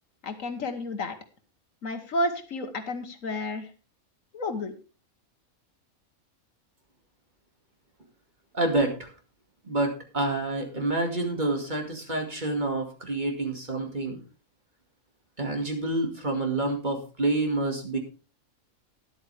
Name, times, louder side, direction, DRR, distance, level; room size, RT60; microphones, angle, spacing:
voice 1, 0.2-1.1 1.8-3.7 4.3-4.7, left 1 dB, 65° left, 8 dB, 1.6 m, -31 dB
voice 2, 8.5-9.1 9.6-14.2 15.4-18.0, right 2 dB, 30° right, 3 dB, 2.4 m, -28 dB
12.5 x 11.0 x 3.4 m, 0.33 s
omnidirectional pair, 1.5 m